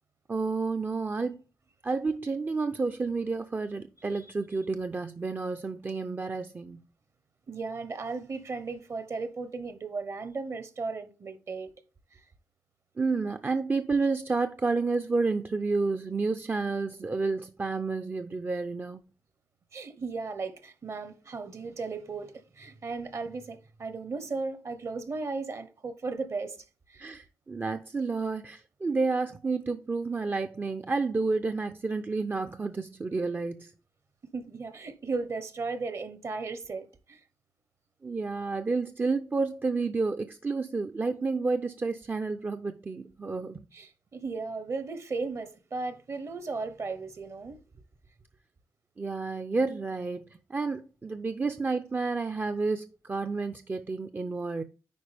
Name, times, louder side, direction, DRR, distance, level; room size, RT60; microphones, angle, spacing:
voice 1, 0.3-1.4 1.8-6.8 13.0-19.0 27.0-33.7 38.0-43.7 49.0-54.6, right 3 dB, 30° right, 0.5 m, -30 dB
voice 2, 7.5-11.7 12.1-12.2 19.7-26.6 26.9-27.0 34.3-37.2 43.7-47.6, right 4 dB, 45° right, 1.0 m, -36 dB
9.4 x 4.7 x 3.4 m
cardioid pair, 80°, 7 cm